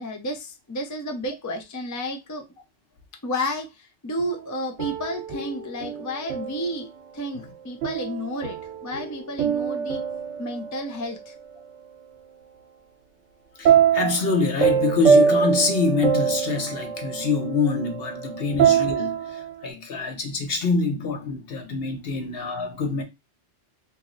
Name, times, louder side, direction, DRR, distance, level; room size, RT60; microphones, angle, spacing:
voice 1, 0.0-2.4 3.2-10.0 10.4-11.3 22.1-22.3, equal, 30° left, 0.3 m, -31 dB
sound 1, 4.2-6.9 7.8-11.2 13.7-19.7, right 7 dB, 75° right, 1.1 m, -24 dB
voice 2, 13.6-23.0, left 4 dB, 55° left, 0.9 m, -25 dB
3.0 x 2.7 x 3.8 m
omnidirectional pair, 1.3 m